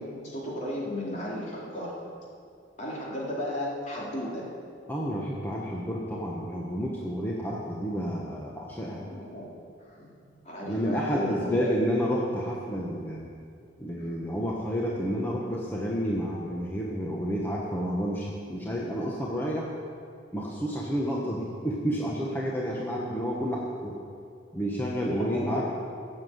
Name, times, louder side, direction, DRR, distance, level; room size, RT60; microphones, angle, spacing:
voice 1, 0.0-1.9 2.8-4.5 9.0-9.5 9.9-10.1 10.4-11.8 14.0-14.1 25.3-25.6, left 1 dB, 40° left, -5 dB, 3.6 m, -34 dB
voice 2, 4.9-9.0 10.6-13.3 13.8-19.7 20.3-24.0 24.5-25.6, equal, 10° left, -4 dB, 1.3 m, -30 dB
15.5 x 7.6 x 8.0 m, 2.4 s
head